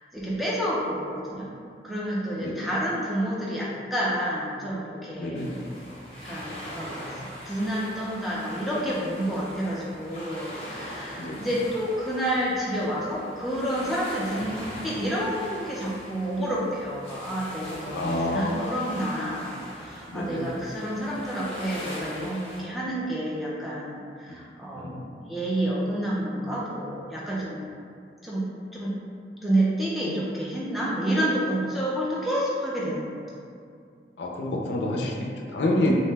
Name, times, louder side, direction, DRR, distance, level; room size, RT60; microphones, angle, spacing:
voice 1, 0.1-1.5 1.8-5.4 6.2-7.1 7.5-27.7 28.2-28.4 28.7-28.9 29.4-33.1, right 1 dB, ahead, -7 dB, 0.4 m, -29 dB
voice 2, 2.4-2.7 5.2-5.7 11.2-11.5 17.9-18.5 20.1-20.6 24.8-25.0 34.2-35.9, left 1 dB, 75° left, -1 dB, 0.4 m, -28 dB
sound 1, 5.3-22.6, equal, 35° left, 0.7 m, -41 dB
2.7 x 2.1 x 3.2 m, 2.3 s
head